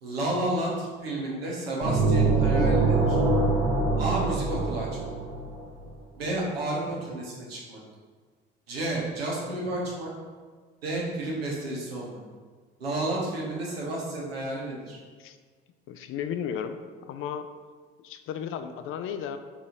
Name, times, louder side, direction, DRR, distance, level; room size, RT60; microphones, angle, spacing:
voice 1, 0.0-3.2 4.0-5.1 6.2-7.8 8.7-10.1 10.8-12.2 12.8-15.0, right 1 dB, 90° right, -4 dB, 1.0 m, -31 dB
sound 1, 1.8-5.6, right 3 dB, 60° right, 0.9 m, -24 dB
voice 2, 15.9-16.8 17.1-17.5 18.0-19.4, left 8 dB, 45° left, 9 dB, 0.4 m, -34 dB
4.0 x 3.0 x 3.9 m, 1.5 s
hypercardioid pair, 60°, 29 cm